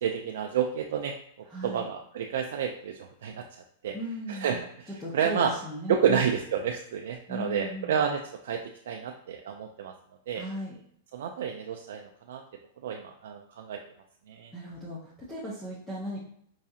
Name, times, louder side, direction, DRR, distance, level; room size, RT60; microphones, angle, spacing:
voice 1, 0.0-3.9 4.3-5.5 5.9-9.9 10.3-10.4 11.1-12.4 12.8-13.8 14.3-14.5, right 7 dB, 70° right, 3 dB, 0.3 m, -30 dB
voice 2, 1.5-1.9 3.9-4.7 5.0-6.2 7.3-8.0 10.3-10.7 14.5-16.2, equal, 5° left, -7 dB, 0.6 m, -37 dB
4.6 x 2.4 x 2.7 m, 0.67 s
supercardioid pair, 165°, 0 cm